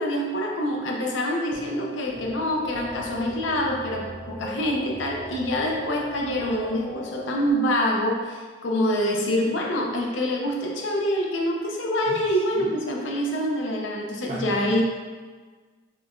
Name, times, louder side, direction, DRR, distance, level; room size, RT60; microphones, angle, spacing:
voice 1, 0.0-14.8, equal, 90° left, 0 dB, 0.5 m, -26 dB
sound 1, 1.5-7.5, equal, 35° left, 0.5 m, -39 dB
sound 2, 2.1-7.2, right 1 dB, 55° right, 1.2 m, -46 dB
voice 2, 14.3-14.8, right 2 dB, 35° right, -5 dB, 0.3 m, -35 dB
4.5 x 2.3 x 2.4 m, 1.4 s
head